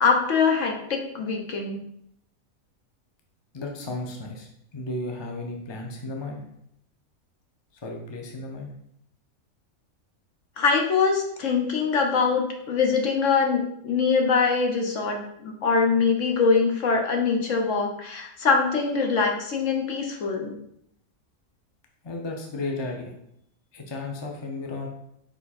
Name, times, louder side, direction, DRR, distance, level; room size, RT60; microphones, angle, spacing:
voice 1, 0.0-1.8 10.6-20.6, left 5 dB, 65° left, 2 dB, 1.2 m, -23 dB
voice 2, 3.5-6.5 7.8-8.7 22.0-23.1 23.7-24.9, left 2 dB, 20° left, 1 dB, 0.8 m, -34 dB
5.3 x 5.0 x 4.2 m, 0.73 s
omnidirectional pair, 1.5 m